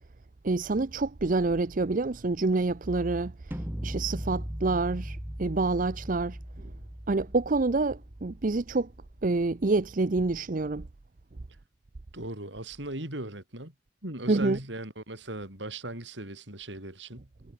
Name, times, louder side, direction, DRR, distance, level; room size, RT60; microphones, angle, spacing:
voice 1, 0.4-3.3 3.8-6.7 7.1-8.9 9.2-10.9 14.3-14.6, right 3 dB, 45° right, 0.7 m, -27 dB
sound 1, 3.5-9.5, equal, 10° right, 1.4 m, -39 dB
voice 2, 12.1-13.7 14.0-17.3, right 1 dB, 85° right, 7.7 m, -38 dB
head